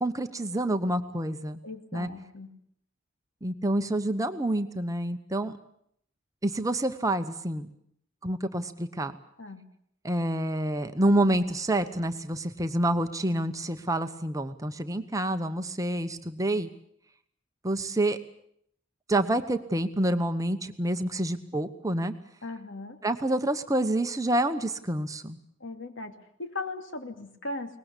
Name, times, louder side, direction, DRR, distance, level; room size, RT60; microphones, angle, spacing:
voice 1, 0.0-1.6 1.9-2.1 3.4-5.5 6.4-7.7 8.2-9.1 10.0-16.7 17.6-18.2 19.1-22.1 23.0-25.4, right 1 dB, 15° right, 8 dB, 1.0 m, -28 dB
voice 2, 1.6-2.5 9.4-9.6 22.4-23.0 25.6-27.8, left 2 dB, 65° left, 6 dB, 2.5 m, -38 dB
23.0 x 20.0 x 8.3 m, 0.70 s
head